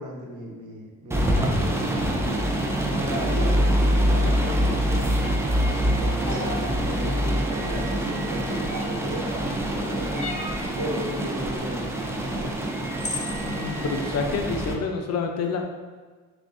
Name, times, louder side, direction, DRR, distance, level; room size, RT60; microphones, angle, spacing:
voice 1, 0.0-2.4 2.8-5.3 5.8-10.4 10.7-12.6, right 1 dB, 80° right, -3 dB, 1.1 m, -35 dB
sound 1, 1.1-14.7, equal, 10° right, 0.5 m, -25 dB
sound 2, 5.1-6.1 6.9-8.6 9.9-11.2 12.5-14.1, right 3 dB, 35° right, 0.9 m, -44 dB
sound 3, 6.3-6.6 8.7-9.1 10.1-10.6 12.3-12.4 13.0-13.4, left 2 dB, 25° left, 0.8 m, -33 dB
voice 2, 13.4-15.6, left 4 dB, 60° left, 3 dB, 0.6 m, -28 dB
5.9 x 2.4 x 2.6 m, 1.4 s
cardioid pair, 90°, 30 cm